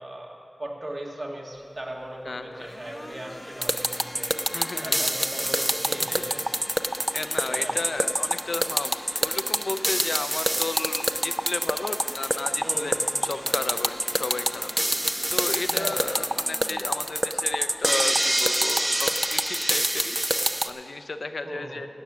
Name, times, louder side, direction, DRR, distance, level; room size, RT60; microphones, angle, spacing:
voice 1, 0.0-4.6 4.8-6.7 7.5-7.8 12.6-13.1 13.3-13.6 15.6-16.0 21.4-21.9, right 1 dB, 55° right, -1 dB, 1.8 m, -38 dB
Domestic sounds home sounds, 1.5-20.4, left 1 dB, 30° left, 0.7 m, -44 dB
voice 2, 2.3-2.7 4.5-5.1 7.1-12.9 13.2-14.7 15.3-20.2 20.6-21.9, left 3 dB, 75° left, 9 dB, 0.5 m, -34 dB
sound 1, 3.6-20.7, right 1 dB, 15° right, 0.5 m, -25 dB
13.0 x 9.0 x 6.1 m, 2.5 s
wide cardioid pair, 65°, 0 cm